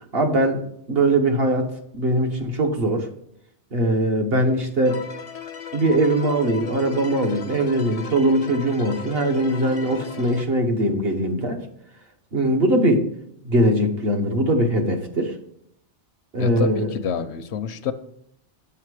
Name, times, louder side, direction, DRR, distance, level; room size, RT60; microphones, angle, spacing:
voice 1, 0.1-0.6 0.9-3.1 3.7-5.0 5.7-11.6 12.3-13.1 13.4-15.3 16.3-16.9, right 1 dB, 60° right, 4 dB, 1.2 m, -21 dB
sound 1, 4.8-10.5, left 6 dB, 50° left, 0.5 m, -37 dB
voice 2, 16.4-17.9, left 7 dB, 70° left, 10 dB, 0.9 m, -28 dB
8.1 x 5.7 x 4.8 m, 0.71 s
omnidirectional pair, 1.2 m